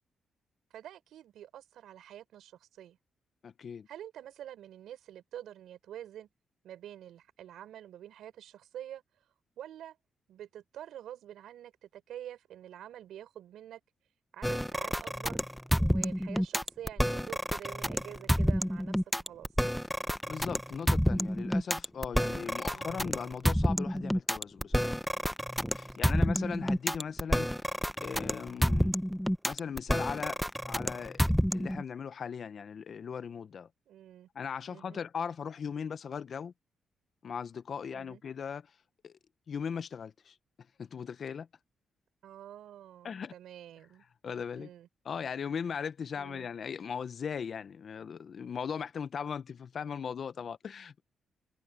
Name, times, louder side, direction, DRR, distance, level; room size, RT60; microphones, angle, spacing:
voice 1, 0.7-3.0 3.9-6.3 6.6-9.0 9.6-10.0 10.3-13.8 14.3-15.4 15.8-19.5 22.7-23.0 26.0-26.2 33.9-34.3 34.7-35.0 37.9-38.2 42.2-44.0 44.5-44.9 46.2-46.5, right 11 dB, 80° right, 5.6 m, -47 dB
voice 2, 3.4-3.9 20.3-25.0 25.7-27.5 28.0-29.0 29.4-30.4 30.6-31.2 31.5-33.7 34.3-36.5 37.2-38.7 39.0-39.2 39.5-40.4 40.8-41.5 43.0-43.3 44.2-44.7 45.0-51.0, left 7 dB, 60° left, 1.2 m, -38 dB
sound 1, 14.4-31.8, equal, ahead, 1.1 m, -29 dB
supercardioid pair, 60°, 0 cm